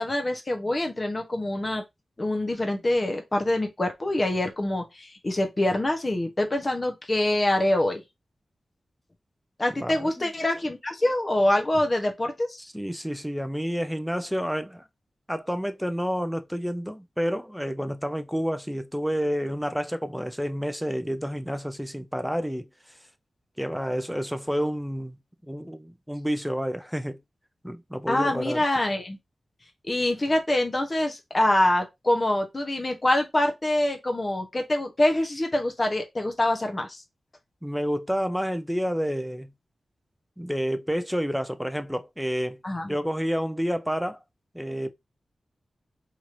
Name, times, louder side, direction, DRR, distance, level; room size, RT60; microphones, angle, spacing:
voice 1, 0.0-1.8 2.2-8.0 9.6-12.6 28.1-29.2 29.8-37.0 42.6-42.9, left 1 dB, 30° left, 0.7 m, -25 dB
voice 2, 9.8-10.3 12.6-14.8 15.3-22.7 23.6-25.2 25.5-27.2 27.6-28.6 37.6-39.5 40.4-42.6 42.9-44.2 44.5-44.9, equal, ahead, 0.3 m, -29 dB
3.1 x 2.9 x 2.5 m
wide cardioid pair, 150°, 0 cm